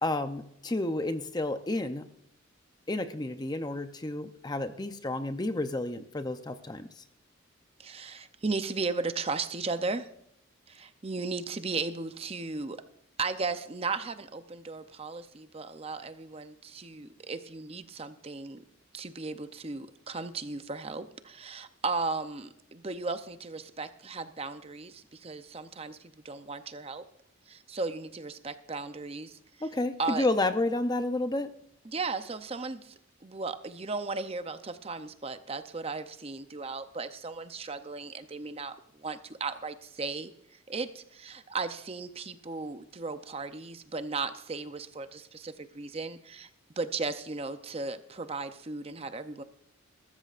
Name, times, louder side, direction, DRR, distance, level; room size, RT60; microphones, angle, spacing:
voice 1, 0.0-2.0 2.9-6.9 29.6-31.5, left 2 dB, 20° left, 9 dB, 0.6 m, -31 dB
voice 2, 7.8-10.1 10.7-12.8 13.2-18.6 18.9-27.0 27.5-29.4 30.0-30.3 31.8-32.9 33.2-40.3 40.7-46.5 46.8-49.4, right 3 dB, 30° right, 10 dB, 0.6 m, -36 dB
21.0 x 13.5 x 2.5 m, 0.75 s
head